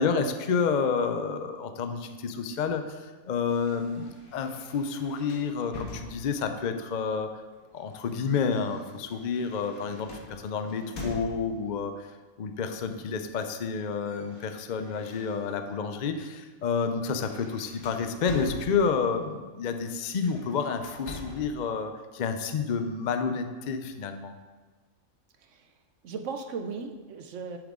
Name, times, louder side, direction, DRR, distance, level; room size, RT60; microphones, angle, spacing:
voice 1, 0.0-7.3 7.7-12.1 12.4-24.3, left 5 dB, 55° left, 7 dB, 0.5 m, -29 dB
sound 1, 3.5-6.6 7.5-11.7 12.8-13.1 13.4-15.7 16.2-16.4 16.8-19.2 20.1-21.6, equal, 75° left, 1.8 m, -44 dB
voice 2, 25.4-25.7 26.0-27.6, right 5 dB, 65° right, 6 dB, 1.0 m, -37 dB
8.0 x 7.3 x 3.7 m, 1.3 s
omnidirectional pair, 1.5 m